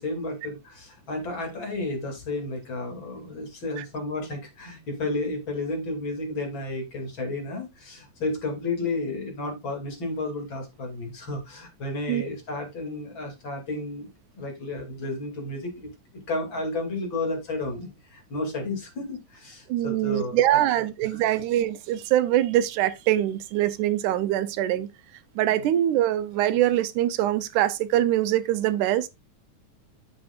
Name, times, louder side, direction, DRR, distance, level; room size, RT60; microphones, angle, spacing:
voice 1, 0.0-14.1 14.4-21.2 25.5-25.7, left 2 dB, 40° left, 3.0 m, -32 dB
voice 2, 19.7-24.9 25.4-29.1, right 13 dB, 90° right, 2.2 m, -23 dB
9.4 x 7.7 x 2.4 m
omnidirectional pair, 3.5 m